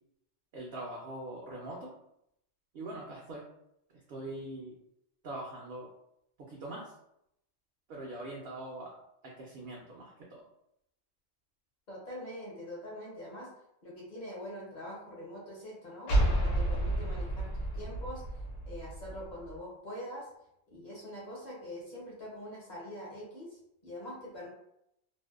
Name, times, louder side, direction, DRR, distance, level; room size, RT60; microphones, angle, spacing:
voice 1, 0.5-1.9 2.7-3.5 3.9-4.7 5.2-5.9 6.4-6.9 7.9-10.4, right 1 dB, 65° right, -3 dB, 0.7 m, -42 dB
voice 2, 11.9-13.5 13.8-18.2 18.7-20.3 20.7-24.5, equal, 45° left, -5 dB, 0.7 m, -44 dB
sound 1, 16.1-19.6, right 1 dB, 85° left, 1.0 m, -31 dB
2.6 x 2.1 x 2.3 m, 0.78 s
omnidirectional pair, 1.3 m